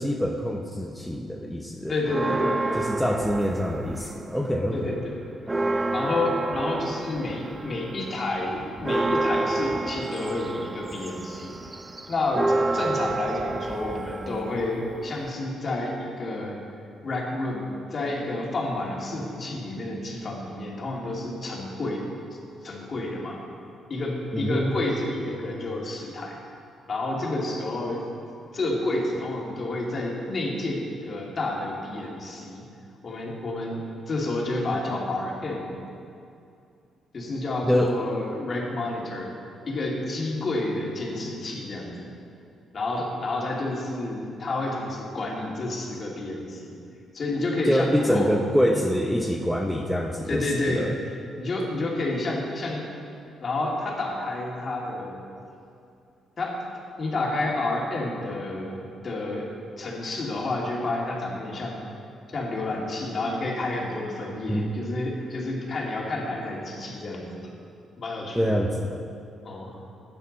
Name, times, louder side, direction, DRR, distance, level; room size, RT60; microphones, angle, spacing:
voice 1, 0.0-1.9 2.8-5.0 24.3-24.7 37.6-37.9 47.7-50.9 64.5-64.7 68.4-69.0, equal, ahead, 0 dB, 0.7 m, -25 dB
voice 2, 1.9-2.8 4.7-5.2 5.9-11.5 12.1-16.6 17.0-22.0 22.3-23.4 23.9-26.4 26.9-28.0 28.5-32.6 33.0-35.7 37.1-39.3 39.7-42.1 42.7-46.8 47.1-48.4 48.7-48.9 50.3-50.9 51.4-52.9 53.4-55.2 56.4-56.6 57.0-59.5 59.8-61.9 62.3-67.5 68.0-68.6 69.4-69.8, left 2 dB, 45° left, -2 dB, 2.4 m, -30 dB
sound 1, 2.1-4.4 4.8-15.3, right 2 dB, 15° right, 0.4 m, -29 dB
12.5 x 9.2 x 4.1 m, 2.5 s
cardioid pair, 90°, 0 cm